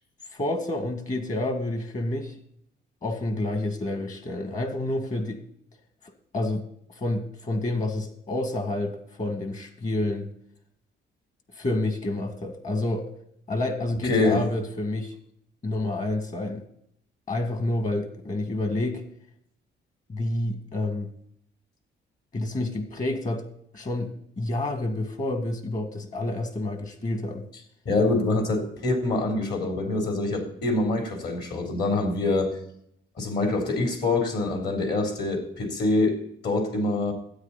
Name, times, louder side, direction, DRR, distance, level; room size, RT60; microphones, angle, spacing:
voice 1, 0.3-2.3 3.0-5.4 6.3-6.6 7.0-10.3 11.6-13.1 13.5-15.1 15.6-16.6 17.3-19.0 20.1-21.1 22.3-23.4 23.7-24.1 24.4-27.4, left 2 dB, 40° left, 7 dB, 2.1 m, -29 dB
voice 2, 14.0-14.4 27.9-32.6 33.2-37.1, left 2 dB, 55° left, 3 dB, 3.7 m, -25 dB
13.0 x 9.2 x 4.2 m, 0.69 s
cardioid pair, 90°, 20 cm